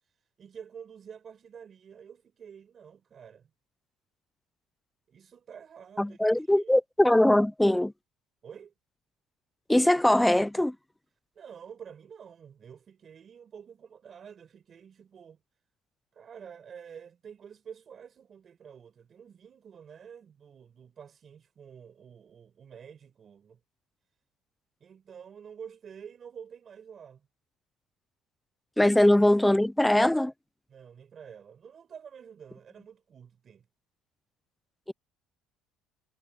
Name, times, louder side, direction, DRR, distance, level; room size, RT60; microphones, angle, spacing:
voice 1, 0.4-3.5 5.1-6.2 6.5-6.7 8.4-8.7 11.3-15.4 16.1-23.6 24.8-27.3 28.8-29.0 30.7-33.7, right 7 dB, 35° right, 6.1 m, -48 dB
voice 2, 6.0-7.9 9.7-10.8 28.8-30.3, left 1 dB, 5° left, 0.5 m, -21 dB
cardioid pair, 130°, 0 cm